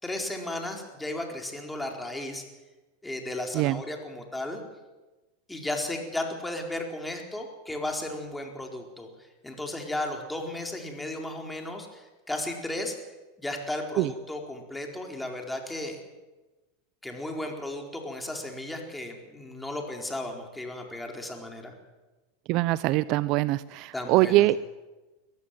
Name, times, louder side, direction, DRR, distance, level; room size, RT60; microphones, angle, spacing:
voice 1, 0.0-2.5 3.0-4.6 5.5-13.0 13.4-16.0 17.0-21.7 23.9-24.5, left 1 dB, 5° left, 2 dB, 4.3 m, -35 dB
voice 2, 22.5-24.6, right 17 dB, 50° right, 18 dB, 0.6 m, -23 dB
22.0 x 14.5 x 9.2 m, 1.1 s
hypercardioid pair, 110°, 0 cm